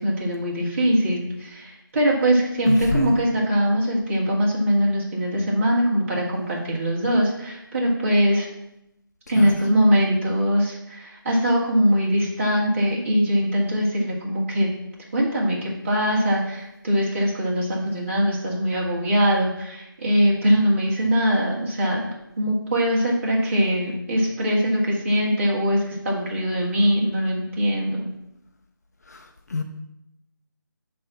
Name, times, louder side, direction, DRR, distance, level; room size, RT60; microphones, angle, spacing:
voice 1, 0.0-8.5 9.3-14.7 15.1-22.0 22.4-28.1, equal, 35° right, -4 dB, 2.3 m, -22 dB
voice 2, 2.7-3.2 9.3-9.6 29.1-29.6, left 3 dB, 45° left, 4 dB, 0.8 m, -27 dB
10.5 x 3.5 x 5.8 m, 0.85 s
figure-of-eight pair, 165°, 12 cm